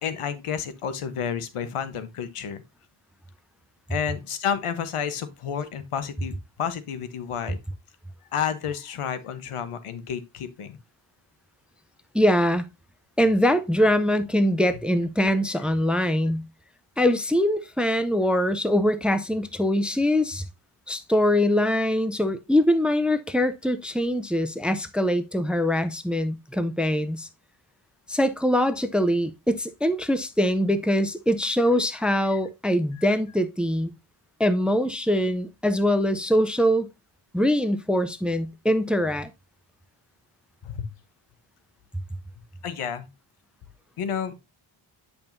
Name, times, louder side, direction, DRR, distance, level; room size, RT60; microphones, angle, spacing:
voice 1, 0.0-2.6 3.9-6.3 6.6-7.6 8.3-10.8 15.9-16.0 32.3-32.4 32.9-33.0 40.6-40.9 42.6-43.1 44.0-44.3, left 8 dB, 90° left, 1.1 m, -30 dB
voice 2, 12.1-12.6 13.2-16.4 17.0-20.4 20.9-27.3 28.1-33.9 34.4-36.9 37.3-39.3, equal, ahead, 0.5 m, -23 dB
8.8 x 5.4 x 2.6 m
wide cardioid pair, 120°, 50 cm